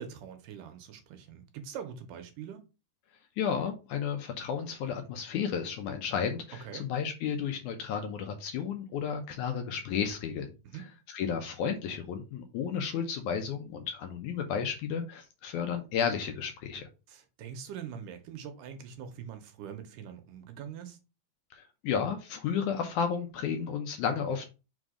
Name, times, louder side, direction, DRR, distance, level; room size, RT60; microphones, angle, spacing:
voice 1, 0.0-2.6 6.6-6.8 10.6-10.9 17.1-21.0, right 8 dB, 75° right, 2.2 m, -43 dB
voice 2, 3.4-10.5 11.1-16.9 21.5-24.5, left 7 dB, 75° left, 1.9 m, -32 dB
5.2 x 3.9 x 4.9 m
omnidirectional pair, 4.0 m